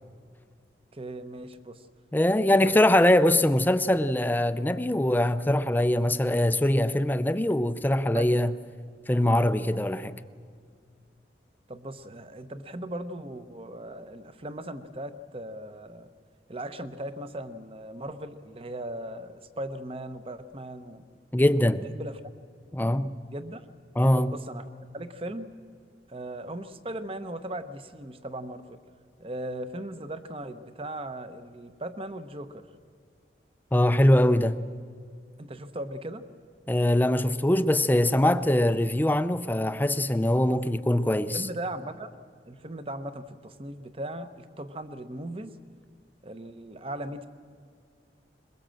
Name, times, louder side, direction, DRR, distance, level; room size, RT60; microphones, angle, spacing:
voice 1, 0.9-1.8 2.5-2.8 8.1-8.4 11.7-16.1 16.5-21.0 21.9-22.2 23.3-23.7 24.2-24.6 24.9-25.5 26.1-28.8 29.2-32.7 35.4-36.2 41.3-42.1 42.4-45.6 46.2-47.3, right 1 dB, 30° right, 0.9 m, -38 dB
voice 2, 2.1-8.5 9.1-10.2 21.3-21.9 22.7-23.1 24.0-24.3 33.7-34.6 36.7-41.4, left 1 dB, 10° left, 0.5 m, -22 dB
21.5 x 21.5 x 7.6 m
head